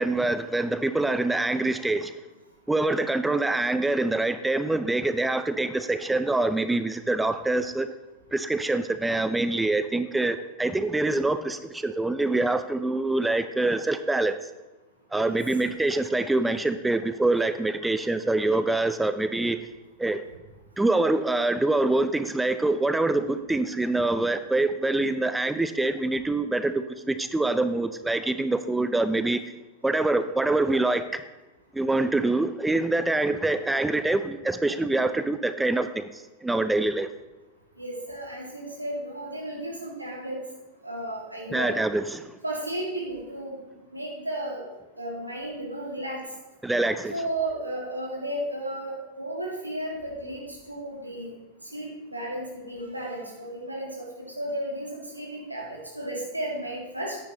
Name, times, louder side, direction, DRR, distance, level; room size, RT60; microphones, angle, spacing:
voice 1, 0.0-2.1 2.7-7.9 8.3-14.4 15.1-19.6 20.0-20.2 20.8-29.4 29.8-31.2 31.7-37.1 41.5-42.4 46.6-47.1, right 2 dB, 5° right, 11 dB, 0.4 m, -25 dB
voice 2, 37.8-40.4 40.8-41.8 42.4-43.6 43.9-44.6 45.0-46.2 47.1-51.3 51.6-54.1 54.3-57.2, right 1 dB, 85° right, -2 dB, 2.3 m, -33 dB
9.9 x 9.6 x 3.1 m, 1.1 s
figure-of-eight pair, 90°, 0 cm